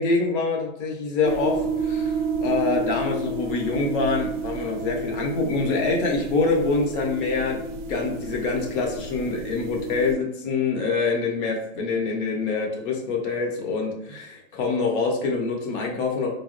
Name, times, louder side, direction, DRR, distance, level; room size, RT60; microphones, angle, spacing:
voice 1, 0.0-7.6 7.9-16.3, left 4 dB, 45° left, 1 dB, 0.7 m, -25 dB
sound 1, 1.2-10.1, right 4 dB, 65° right, 0.5 m, -30 dB
3.8 x 2.0 x 2.5 m, 0.75 s
hypercardioid pair, 145°, 39 cm